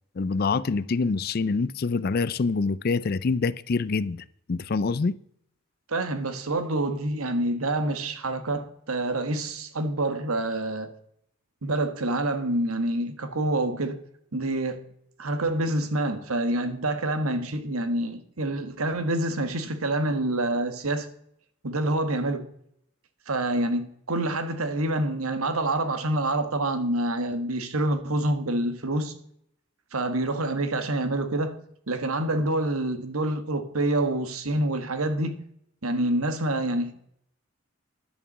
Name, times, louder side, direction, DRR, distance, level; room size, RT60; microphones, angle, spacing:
voice 1, 0.2-5.2, left 4 dB, 45° left, 0.4 m, -26 dB
voice 2, 5.9-10.9 11.6-14.0 14.3-14.9 15.2-21.1 21.6-22.5 23.3-29.1 29.9-31.6 31.9-35.4 35.8-37.1, right 1 dB, 90° right, 1.4 m, -27 dB
11.0 x 6.9 x 7.3 m
head